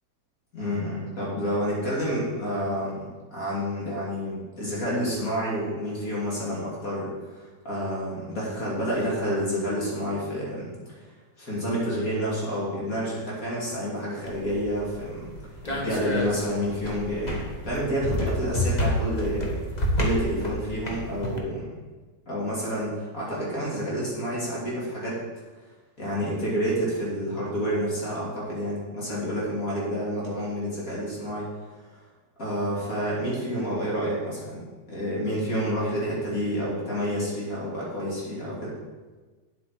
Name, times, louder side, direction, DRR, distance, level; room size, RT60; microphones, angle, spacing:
voice 1, 0.5-10.7 11.4-15.3 15.6-19.6 19.9-21.7 22.3-25.2 26.0-31.5 32.4-38.7, equal, 50° left, -6 dB, 3.1 m, -29 dB
sound 1, 14.2-21.4, equal, 25° left, 1.2 m, -30 dB
9.2 x 8.0 x 4.7 m, 1.3 s
omnidirectional pair, 1.9 m